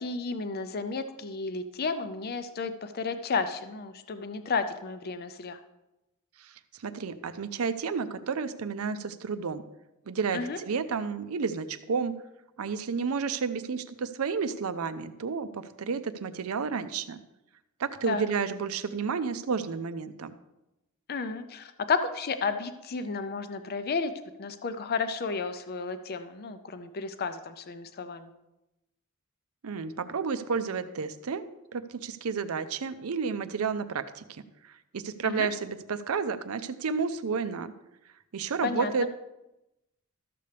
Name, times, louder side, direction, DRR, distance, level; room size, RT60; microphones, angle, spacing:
voice 1, 0.0-5.6 10.3-10.6 18.1-18.2 21.1-24.1 24.4-28.3 35.2-35.5 38.6-38.9, left 4 dB, 45° left, 10 dB, 0.5 m, -32 dB
voice 2, 6.4-9.6 10.1-12.1 12.6-17.2 17.8-20.3 29.6-31.4 31.7-37.7 38.3-39.1, right 5 dB, 85° right, 12 dB, 0.5 m, -31 dB
12.5 x 6.8 x 3.3 m, 0.95 s
head